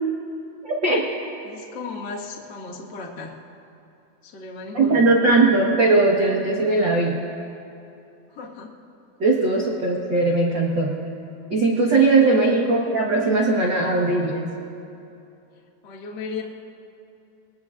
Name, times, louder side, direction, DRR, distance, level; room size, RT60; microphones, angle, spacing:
voice 1, 0.6-1.0 4.7-7.1 9.2-10.9 11.5-14.4, right 3 dB, 90° right, -2 dB, 1.0 m, -19 dB
voice 2, 1.4-3.3 4.2-5.1 6.9-7.0 8.3-8.7 12.2-12.7 15.8-16.4, left 4 dB, 45° left, -3 dB, 1.4 m, -35 dB
23.5 x 20.0 x 2.5 m, 2.7 s
omnidirectional pair, 4.4 m